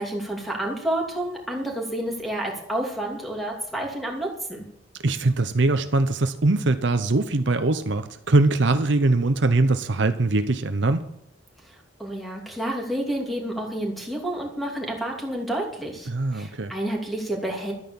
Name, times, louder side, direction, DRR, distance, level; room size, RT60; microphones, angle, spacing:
voice 1, 0.0-4.6 12.0-17.7, right 1 dB, ahead, 0 dB, 2.7 m, -29 dB
voice 2, 5.0-11.0 16.1-16.7, right 2 dB, 60° right, 9 dB, 0.8 m, -22 dB
12.5 x 9.6 x 7.1 m, 0.73 s
head